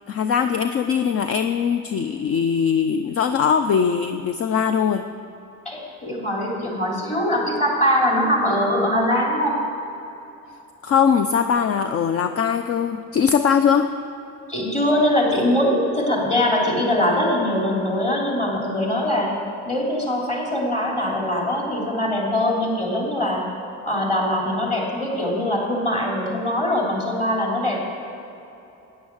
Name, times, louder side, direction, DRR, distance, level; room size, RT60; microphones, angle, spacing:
voice 1, 0.1-5.0 10.8-13.9, left 7 dB, 50° left, 8 dB, 0.5 m, -21 dB
voice 2, 5.6-9.6 14.5-19.4 19.6-23.5 23.8-27.8, left 1 dB, 20° left, -2 dB, 3.2 m, -22 dB
13.5 x 9.7 x 7.2 m, 3.0 s
cardioid pair, 140°, 29 cm